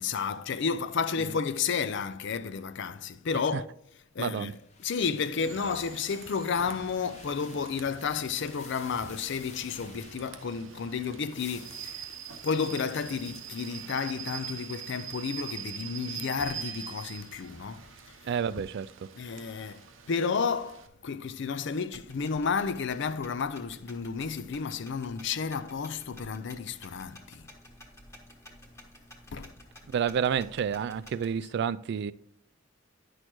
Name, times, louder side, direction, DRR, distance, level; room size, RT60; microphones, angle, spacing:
voice 1, 0.0-3.7 4.2-12.0 12.4-17.9 19.1-19.8 20.1-27.4 29.3-29.5, left 5 dB, 65° left, 0.5 m, -32 dB
voice 2, 4.2-4.5 18.2-18.9 29.9-32.1, right 7 dB, 60° right, 0.3 m, -29 dB
sound 1, 4.3-10.7 11.1-15.7, left 5 dB, 35° left, 0.9 m, -53 dB
Rain / Train, 5.4-20.9, right 8 dB, 90° right, 0.8 m, -44 dB
sound 2, 21.9-31.4, left 1 dB, 15° left, 1.4 m, -52 dB
10.0 x 6.3 x 3.0 m
head